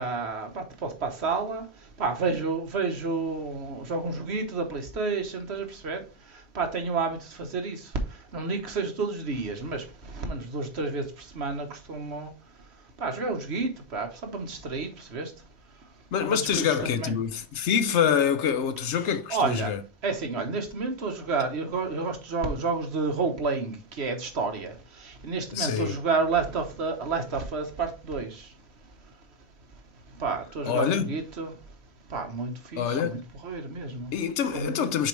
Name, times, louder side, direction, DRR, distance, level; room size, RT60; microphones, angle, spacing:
voice 1, 0.0-1.6 2.0-6.0 6.5-7.9 8.3-11.0 11.3-12.3 13.0-15.3 16.2-17.1 19.3-19.7 20.0-28.5 30.2-31.5 32.1-34.1 34.5-34.9, right 4 dB, 65° right, 1.4 m, -30 dB
voice 2, 16.1-19.8 25.5-26.0 30.7-31.1 32.8-33.2 34.1-35.1, left 7 dB, 75° left, 0.9 m, -26 dB
6.6 x 4.5 x 3.2 m
omnidirectional pair, 1.2 m